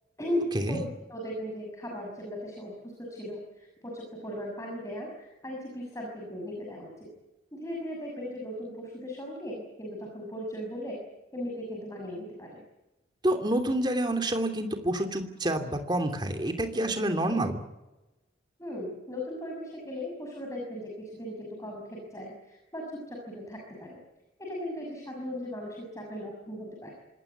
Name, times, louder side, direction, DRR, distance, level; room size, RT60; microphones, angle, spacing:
voice 1, 0.2-7.1 7.5-11.1 11.3-12.6 18.6-24.0 24.4-26.9, left 1 dB, 15° left, -1 dB, 6.4 m, -37 dB
voice 2, 13.2-17.6, right 1 dB, 25° right, 5 dB, 2.9 m, -28 dB
26.0 x 19.5 x 8.2 m, 1.0 s
head